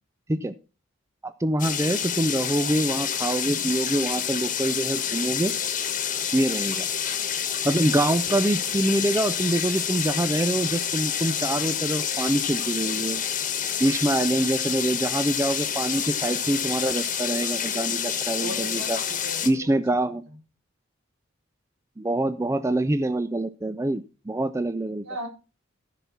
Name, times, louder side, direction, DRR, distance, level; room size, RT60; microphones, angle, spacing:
voice 1, 1.2-5.5 6.3-6.9 7.6-13.2 13.8-19.0 19.4-20.2 22.0-25.1, right 1 dB, 15° right, 13 dB, 0.4 m, -25 dB
sound 1, 1.6-19.5, left 8 dB, 40° left, 1.3 m, -28 dB
voice 2, 18.4-19.5 25.0-25.3, right 1 dB, 85° right, 0 dB, 3.9 m, -37 dB
14.5 x 5.9 x 4.2 m, 0.32 s
head